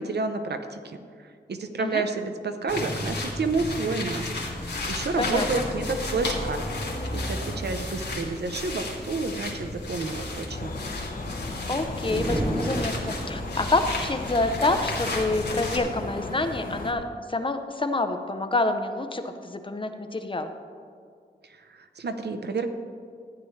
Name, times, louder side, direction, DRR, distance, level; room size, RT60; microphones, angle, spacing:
voice 1, 0.0-4.3 4.9-6.7 7.1-10.8 21.5-22.7, right 3 dB, 70° right, 8 dB, 0.8 m, -30 dB
sound 1, 2.7-15.8, left 2 dB, 70° left, 2.0 m, -33 dB
sound 2, 10.5-16.9, left 2 dB, 50° left, 1.0 m, -36 dB
voice 2, 11.7-20.5, left 2 dB, 30° left, 7 dB, 0.6 m, -27 dB
sound 3, 12.0-13.6, right 1 dB, 15° right, 0.7 m, -30 dB
13.5 x 9.7 x 3.2 m, 2.2 s
wide cardioid pair, 120°, 18 cm